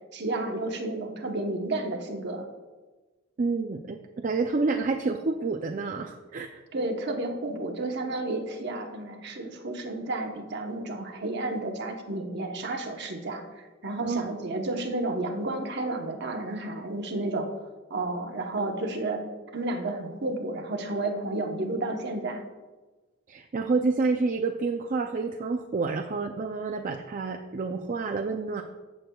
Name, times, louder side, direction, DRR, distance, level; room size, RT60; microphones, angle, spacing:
voice 1, 0.1-2.5 6.7-17.5 17.9-19.2 19.5-22.4, right 2 dB, 55° right, 4 dB, 1.0 m, -31 dB
voice 2, 3.4-6.6 14.0-14.3 23.3-28.6, right 4 dB, 40° right, 4 dB, 0.4 m, -28 dB
14.5 x 7.6 x 2.3 m, 1.3 s
head